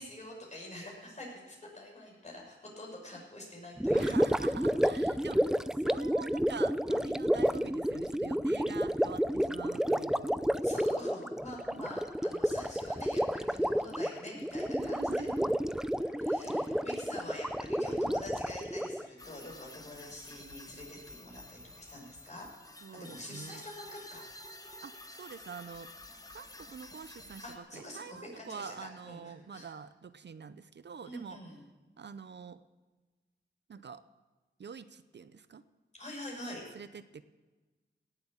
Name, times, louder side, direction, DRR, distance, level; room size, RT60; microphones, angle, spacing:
voice 1, 0.0-4.1 9.3-9.5 10.6-15.3 16.2-22.5 22.9-24.2 27.4-29.7 31.0-31.6 35.9-36.6, left 1 dB, 40° left, -2 dB, 6.1 m, -46 dB
Gurgling, 3.8-19.1, equal, 5° right, 0.4 m, -30 dB
voice 2, 3.9-5.6 5.8-10.4 11.7-12.0 14.8-15.6 18.0-18.2 22.8-23.6 24.8-25.9 26.3-31.4 32.0-32.6 33.7-34.0 34.6-35.6 36.4-37.2, right 6 dB, 65° right, 13 dB, 0.6 m, -46 dB
Harp, 15.1-21.6, left 3 dB, 80° left, 2.5 m, -56 dB
sound 1, 19.2-27.6, left 1 dB, 20° left, 1.2 m, -50 dB
17.5 x 7.8 x 7.3 m, 1.2 s
wide cardioid pair, 80°, 19 cm